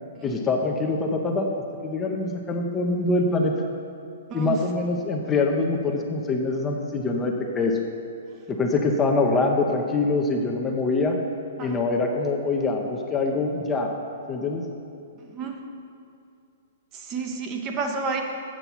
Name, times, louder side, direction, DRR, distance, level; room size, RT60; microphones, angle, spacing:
voice 1, 0.2-3.5 4.3-7.8 8.5-11.2 11.6-13.9 14.3-14.6, left 3 dB, 20° left, 1 dB, 0.9 m, -24 dB
voice 2, 15.2-15.6 16.9-18.2, right 4 dB, 30° right, 2 dB, 1.0 m, -30 dB
8.0 x 7.5 x 5.7 m, 2.5 s
figure-of-eight pair, 115°, 0 cm